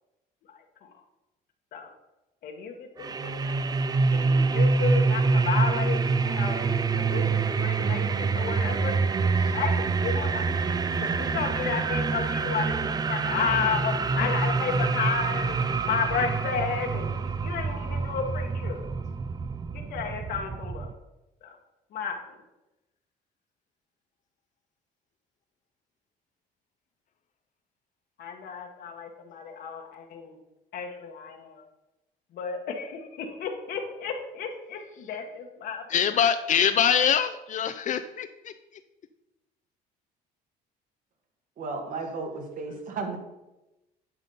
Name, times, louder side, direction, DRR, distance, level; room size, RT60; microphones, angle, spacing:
voice 1, 2.4-3.6 4.1-9.0 9.5-18.8 19.7-20.9 21.4-21.6 21.9-22.4 28.2-30.4 30.7-31.6 32.3-35.8, left 6 dB, 65° left, 3 dB, 1.2 m, -32 dB
sound 1, 3.0-20.9, right 4 dB, 25° right, 0.4 m, -26 dB
voice 2, 35.9-38.5, left 8 dB, 50° left, 9 dB, 0.5 m, -24 dB
voice 3, 41.6-43.2, right 3 dB, 55° right, 4 dB, 1.7 m, -34 dB
11.0 x 4.1 x 5.4 m, 0.98 s
cardioid pair, 110°, 17 cm